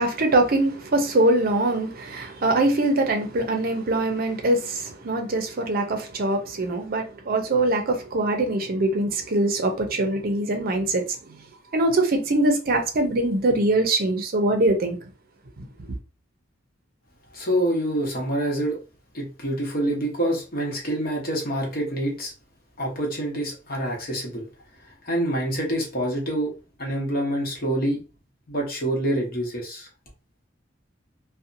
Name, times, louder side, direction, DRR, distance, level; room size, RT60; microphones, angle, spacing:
voice 1, 0.0-11.4 11.7-15.0 15.8-15.9, right 2 dB, 50° right, 0.5 m, -23 dB
voice 2, 17.3-18.8 19.1-22.3 22.8-24.5 25.0-26.5 26.8-28.0 28.5-29.9, right 1 dB, 50° left, 1.0 m, -26 dB
2.7 x 2.1 x 2.6 m
head